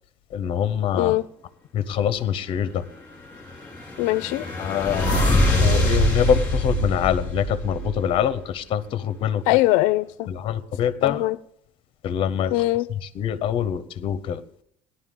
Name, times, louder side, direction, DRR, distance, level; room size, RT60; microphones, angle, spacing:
voice 1, 0.3-1.2 1.7-2.9 4.6-9.6 10.3-11.3 12.0-12.5 13.0-14.4, left 9 dB, 45° left, 13 dB, 0.8 m, -25 dB
sound 1, 3.3-8.3, left 1 dB, 15° left, 4.6 m, -23 dB
voice 2, 4.0-4.4 9.5-10.3 11.0-11.4 12.5-12.9, left 17 dB, 90° left, 17 dB, 0.4 m, -21 dB
18.0 x 11.5 x 3.7 m, 0.68 s
cardioid pair, 155°, 13 cm